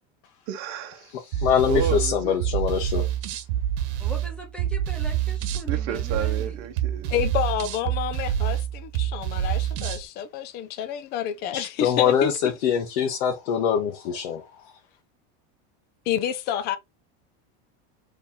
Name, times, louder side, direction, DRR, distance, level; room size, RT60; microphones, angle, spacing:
voice 1, 0.5-1.1 1.6-2.4 5.7-7.1, right 8 dB, 45° right, 0.9 m, -32 dB
voice 2, 1.1-3.1 11.5-14.6, left 8 dB, 80° left, 1.2 m, -24 dB
sound 1, 1.3-10.0, right 11 dB, 85° right, 1.0 m, -27 dB
voice 3, 4.0-6.6, equal, 5° left, 1.2 m, -41 dB
voice 4, 7.1-12.3 16.1-16.8, left 10 dB, 30° left, 0.5 m, -29 dB
4.4 x 3.4 x 3.6 m
cardioid pair, 175°, 32 cm